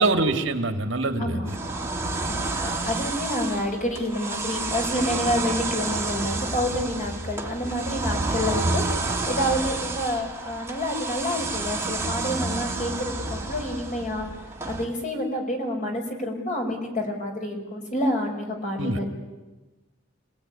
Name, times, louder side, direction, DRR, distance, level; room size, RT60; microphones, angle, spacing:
voice 1, 0.0-1.5 18.8-19.0, right 2 dB, 65° right, 5 dB, 2.5 m, -24 dB
sound 1, 1.5-14.9, right 3 dB, 15° right, 2.6 m, -29 dB
voice 2, 2.3-8.8 9.3-14.3 14.7-19.1, left 1 dB, 40° left, 2 dB, 5.4 m, -28 dB
28.5 x 19.0 x 9.8 m, 1.2 s
head